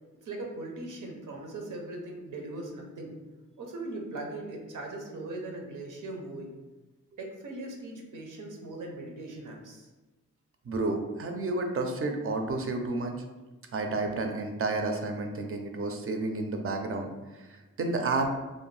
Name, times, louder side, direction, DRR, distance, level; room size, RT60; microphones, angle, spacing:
voice 1, 0.2-3.2 3.6-6.5 7.2-9.9, right 2 dB, 90° right, 1 dB, 0.6 m, -39 dB
voice 2, 10.7-13.1 13.7-17.1 17.4-18.3, right 3 dB, 45° right, 4 dB, 0.4 m, -31 dB
2.6 x 2.1 x 3.1 m, 1.1 s
wide cardioid pair, 95°, 30 cm